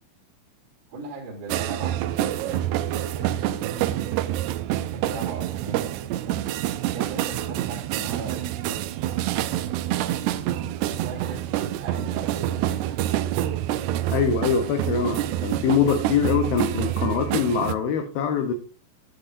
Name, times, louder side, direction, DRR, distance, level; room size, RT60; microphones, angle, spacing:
voice 1, 0.9-4.0 4.8-6.6 6.9-8.8 9.7-10.1 10.6-13.6, right 3 dB, 55° right, -8 dB, 5.3 m, -39 dB
sound 1, 1.5-17.8, right 13 dB, 85° right, 2.3 m, -27 dB
voice 2, 14.1-18.5, left 6 dB, 75° left, 6 dB, 2.3 m, -23 dB
14.0 x 8.4 x 2.6 m, 0.37 s
omnidirectional pair, 5.4 m